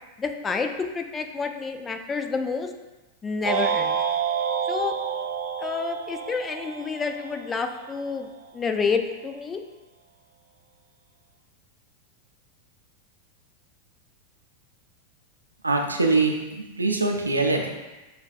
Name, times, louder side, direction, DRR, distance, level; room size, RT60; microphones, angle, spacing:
voice 1, 0.2-2.7 3.2-4.0 4.7-4.9 5.6-8.3 8.5-9.6, left 5 dB, 20° left, 6 dB, 0.3 m, -29 dB
sound 1, 3.4-7.8, right 7 dB, 35° right, 0.6 m, -28 dB
voice 2, 15.6-17.7, right 3 dB, 80° right, 2 dB, 0.4 m, -23 dB
6.4 x 2.3 x 2.4 m, 1.1 s
figure-of-eight pair, 90°, 0 cm